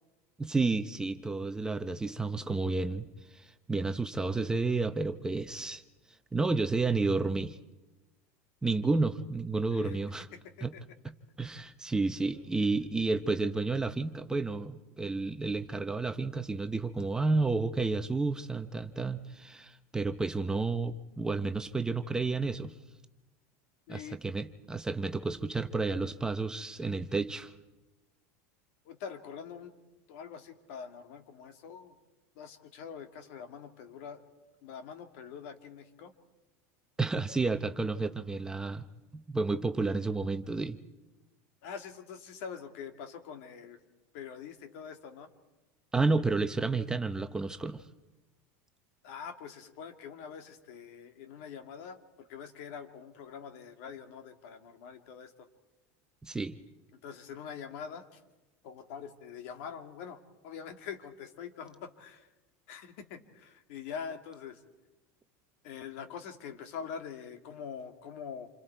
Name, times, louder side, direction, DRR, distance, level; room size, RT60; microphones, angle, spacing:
voice 1, 0.4-3.1 3.3-5.8 6.3-7.6 8.6-10.3 10.6-10.7 11.4-22.7 23.9-27.5 37.0-38.8 39.3-40.8 45.9-47.8 56.2-56.6, right 3 dB, 10° right, 8 dB, 0.7 m, -31 dB
voice 2, 23.9-24.2 28.9-29.7 30.1-31.9 32.4-34.2 34.6-36.1 41.6-43.8 44.1-45.3 49.0-55.5 56.9-58.2 58.6-62.3 62.7-64.6 65.6-68.5, left 7 dB, 70° left, 7 dB, 2.3 m, -44 dB
28.0 x 25.5 x 4.6 m, 1.1 s
supercardioid pair, 145°, 8 cm